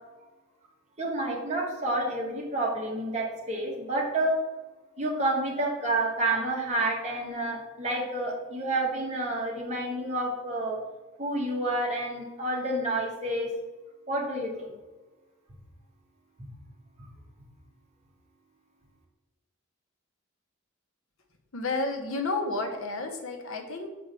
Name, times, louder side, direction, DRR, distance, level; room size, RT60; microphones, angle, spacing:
voice 1, 1.0-4.4 5.0-10.8 11.2-13.5 14.1-14.7, right 1 dB, 35° right, -2 dB, 1.4 m, -29 dB
voice 2, 21.5-23.9, left 3 dB, 75° left, 4 dB, 1.0 m, -31 dB
6.0 x 5.0 x 3.4 m, 1.2 s
head